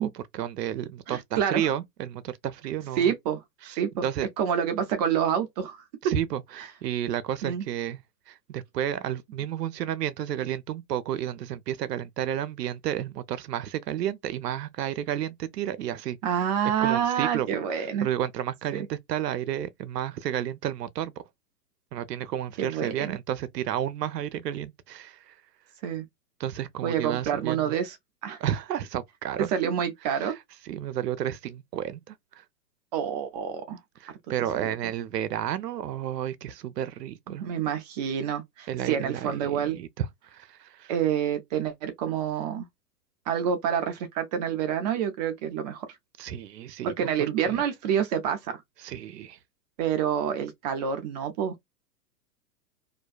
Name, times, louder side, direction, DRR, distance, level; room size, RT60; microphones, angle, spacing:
voice 1, 0.0-3.1 3.6-3.8 4.0-4.3 6.0-8.0 8.3-16.2 16.8-17.5 17.7-21.1 21.9-25.3 26.4-27.7 28.4-29.7 30.1-30.4 30.7-32.2 34.0-37.4 38.7-40.1 40.3-40.9 46.2-47.1 47.5-47.6 48.8-49.4, right 10 dB, 85° right, 0.5 m, -32 dB
voice 2, 1.1-1.7 3.0-3.4 3.7-4.0 4.4-5.8 6.0-6.1 7.4-7.6 16.2-18.1 18.7-18.9 22.6-23.2 25.8-26.0 26.8-28.0 28.2-28.4 29.4-30.3 32.9-33.8 34.6-34.7 37.3-39.8 40.9-42.7 43.3-45.9 46.8-48.6 49.8-51.6, right 8 dB, 30° right, 0.4 m, -27 dB
2.5 x 2.2 x 2.2 m
hypercardioid pair, 105°, 47 cm